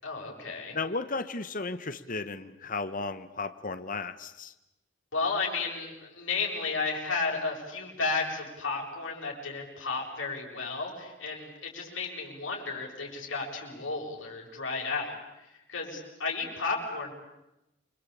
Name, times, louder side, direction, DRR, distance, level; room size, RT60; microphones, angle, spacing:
voice 1, 0.0-0.8 5.1-15.1 15.7-17.1, left 4 dB, 75° left, -2 dB, 7.6 m, -33 dB
voice 2, 0.7-4.5, left 3 dB, 45° left, 10 dB, 1.3 m, -34 dB
29.0 x 24.0 x 8.6 m, 0.93 s
head